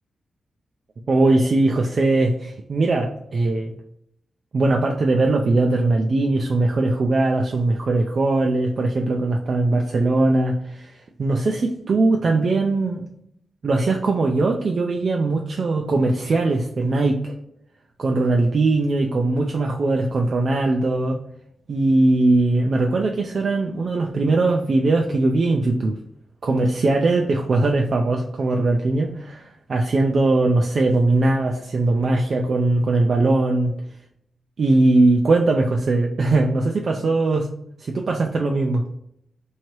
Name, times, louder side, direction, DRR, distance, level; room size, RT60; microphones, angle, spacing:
voice 1, 1.1-3.7 4.5-13.1 13.6-17.4 18.0-21.2 21.7-26.0 26.4-33.8 34.6-37.5 37.8-38.8, right 2 dB, 60° right, 2 dB, 0.4 m, -20 dB
3.1 x 2.7 x 4.4 m, 0.73 s
cardioid pair, 80°, 0 cm